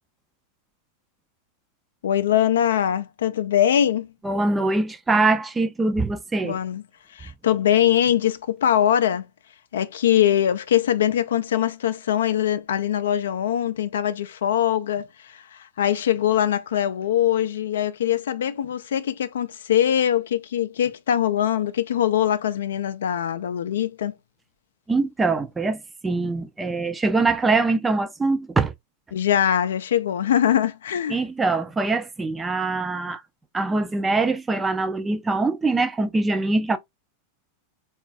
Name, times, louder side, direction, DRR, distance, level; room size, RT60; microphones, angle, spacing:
voice 1, 2.0-4.1 6.4-6.8 7.1-9.2 9.7-24.1 29.1-31.2, left 10 dB, 60° left, 0.3 m, -22 dB
voice 2, 4.2-6.6 24.9-28.7 31.1-33.2 33.5-36.8, right 3 dB, 15° right, 0.4 m, -23 dB
3.8 x 2.3 x 2.4 m
figure-of-eight pair, 90°, 0 cm